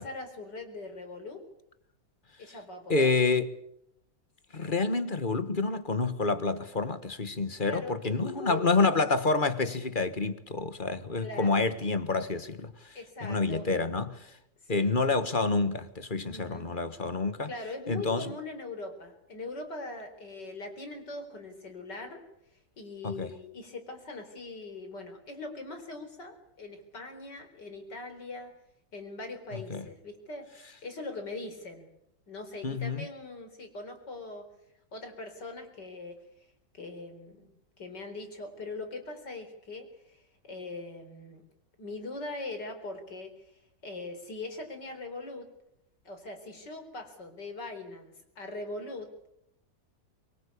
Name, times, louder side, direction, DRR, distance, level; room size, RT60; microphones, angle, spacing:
voice 1, 0.0-1.4 2.4-3.1 7.7-8.9 11.2-11.6 12.9-13.7 14.6-15.0 16.3-16.7 17.4-22.2 22.8-28.5 28.9-31.9 32.3-34.5 34.9-36.2 36.7-37.5 37.8-41.5 41.8-43.3 43.8-45.5 46.0-49.1, left 2 dB, 70° left, 4.9 m, -41 dB
voice 2, 2.9-3.5 4.5-14.3 14.7-17.5 17.9-18.3 23.0-23.3 29.5-29.8 32.6-33.0, left 3 dB, 30° left, 1.5 m, -28 dB
24.0 x 22.5 x 8.6 m
omnidirectional pair, 1.9 m